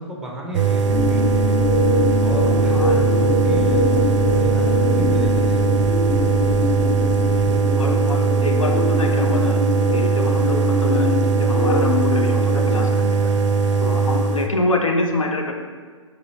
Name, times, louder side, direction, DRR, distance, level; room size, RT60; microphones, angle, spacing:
voice 1, 0.0-1.6 2.2-5.8, right 1 dB, 5° right, -1 dB, 0.6 m, -33 dB
sound 1, 0.5-14.5, right 4 dB, 65° right, 0.4 m, -19 dB
sound 2, 0.9-7.5, left 2 dB, 55° left, 1.2 m, -27 dB
sound 3, 0.9-12.8, left 1 dB, 30° left, 1.3 m, -25 dB
voice 2, 7.8-9.6 9.9-11.1 11.4-13.3 13.8-15.5, left 2 dB, 90° left, 2 dB, 0.6 m, -26 dB
4.3 x 3.9 x 2.9 m, 1.5 s
figure-of-eight pair, 125°, 17 cm